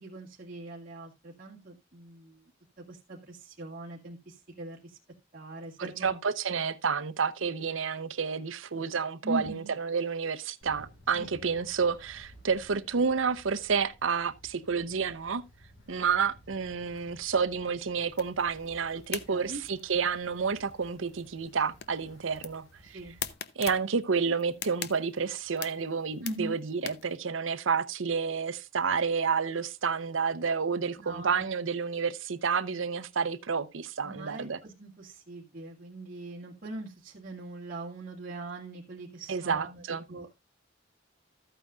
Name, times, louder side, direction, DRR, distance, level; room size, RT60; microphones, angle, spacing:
voice 1, 0.0-2.4 2.9-5.0 5.3-6.2 9.2-9.7 11.1-11.5 19.3-19.6 22.8-23.2 26.2-26.6 31.0-31.5 34.0-39.8 40.1-40.3, right 2 dB, 45° right, 2.0 m, -41 dB
voice 2, 5.8-15.4 15.9-23.0 23.6-34.6 39.3-40.0, right 5 dB, 85° right, 0.8 m, -30 dB
Wind, 10.6-23.3, equal, 85° left, 5.0 m, -56 dB
sound 1, 18.1-27.2, left 9 dB, 55° left, 0.8 m, -44 dB
13.5 x 9.0 x 2.4 m
head